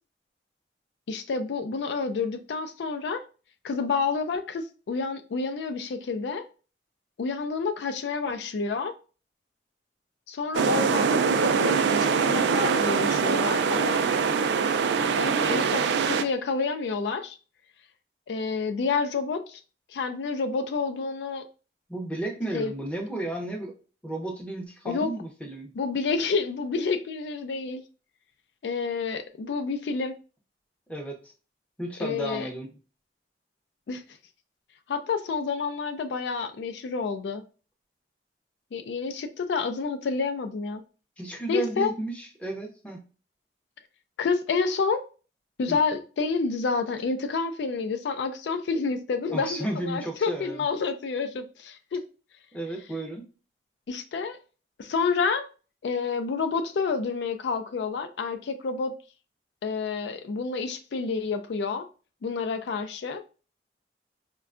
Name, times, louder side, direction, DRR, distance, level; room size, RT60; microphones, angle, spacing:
voice 1, 1.1-3.2 3.6-6.5 7.2-8.9 10.3-14.0 15.1-17.4 18.3-19.6 19.9-21.4 22.5-22.7 24.9-25.1 25.8-27.8 28.6-30.2 32.0-32.5 33.9-34.0 34.9-37.4 38.7-40.8 41.5-41.9 44.2-45.0 45.6-52.0 53.9-54.4 54.8-55.5 55.8-58.9 59.6-61.9 62.2-63.2, left 4 dB, 80° left, 9 dB, 0.4 m, -29 dB
sound 1, 10.5-16.2, right 6 dB, 80° right, 0.3 m, -23 dB
voice 2, 21.9-23.7 24.0-25.7 30.9-31.3 31.8-32.8 41.2-43.0 45.7-45.8 49.3-50.7 52.5-53.3, right 1 dB, 5° left, 1 dB, 0.5 m, -33 dB
4.3 x 2.2 x 2.4 m, 0.35 s
head